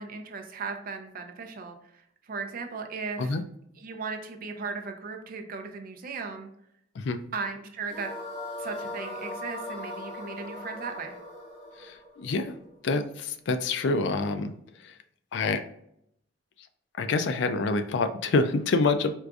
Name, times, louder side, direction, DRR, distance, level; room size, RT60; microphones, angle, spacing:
voice 1, 0.0-3.4 3.8-6.5 7.3-8.1 8.6-11.2, right 4 dB, 50° right, 5 dB, 0.5 m, -37 dB
sound 1, 7.9-13.1, left 1 dB, 35° left, 1.3 m, -39 dB
voice 2, 11.8-12.5 12.8-14.5 15.3-15.6 17.0-19.1, left 3 dB, 70° left, 8 dB, 0.4 m, -26 dB
4.6 x 2.5 x 2.3 m, 0.73 s
head